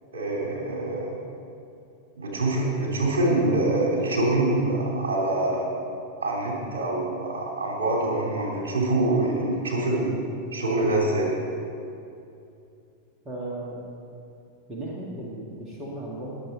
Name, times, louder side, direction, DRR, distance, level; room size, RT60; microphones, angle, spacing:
voice 1, 0.1-1.1 2.2-5.7 6.2-10.2 10.5-11.3, right 2 dB, 65° right, -2 dB, 3.3 m, -25 dB
voice 2, 13.3-13.8 14.7-16.4, right 1 dB, 25° right, -3 dB, 2.0 m, -35 dB
22.0 x 7.7 x 4.0 m, 2.6 s
figure-of-eight pair, 90°, 0 cm